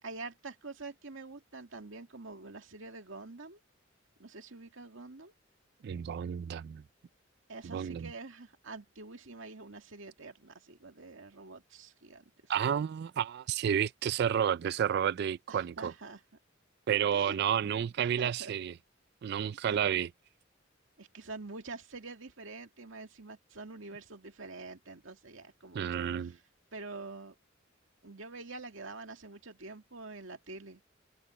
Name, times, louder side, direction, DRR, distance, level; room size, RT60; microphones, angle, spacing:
voice 1, 0.0-3.6 4.2-5.3 7.5-12.5 15.5-16.2 17.1-17.4 18.0-18.5 19.7-19.8 21.0-26.4 26.7-27.4 28.0-30.8, right 3 dB, 80° right, 2.3 m, -46 dB
voice 2, 5.8-6.8 7.6-8.1 12.5-15.9 16.9-18.7 19.2-20.1 25.7-26.3, right 8 dB, 55° right, 0.3 m, -31 dB
head